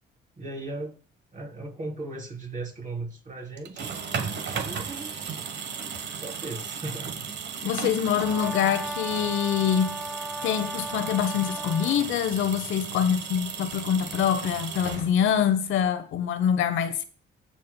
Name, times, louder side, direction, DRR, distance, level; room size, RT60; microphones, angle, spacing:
voice 1, 0.4-1.0 1.3-3.9 4.6-5.2 6.2-7.2, right 2 dB, 40° right, 3.5 m, -37 dB
sound 1, 3.6-15.5, right 6 dB, 60° right, 1.1 m, -35 dB
voice 2, 7.6-9.9 10.4-17.0, left 8 dB, 80° left, 0.9 m, -25 dB
Brass instrument, 8.2-12.1, equal, ahead, 0.5 m, -36 dB
16.5 x 6.2 x 2.2 m
cardioid pair, 90°, 20 cm